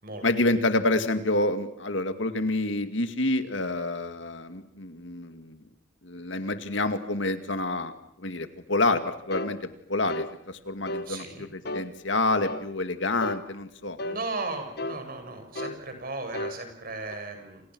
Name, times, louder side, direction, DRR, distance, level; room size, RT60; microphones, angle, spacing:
voice 1, 0.2-5.6 6.0-7.9 8.2-14.0, left 2 dB, 70° left, 9 dB, 2.2 m, -28 dB
sound 1, 9.3-9.6 10.1-10.3 10.9-11.1 11.7-11.9 12.4-12.7 13.2-13.4 14.0-14.2 14.8-15.0 15.6-15.8 16.3-16.6 17.1-17.2, left 1 dB, 55° left, 1.5 m, -33 dB
voice 2, 11.1-11.5 14.0-17.6, right 3 dB, 50° right, 6 dB, 6.6 m, -36 dB
28.5 x 28.5 x 6.3 m, 0.69 s
head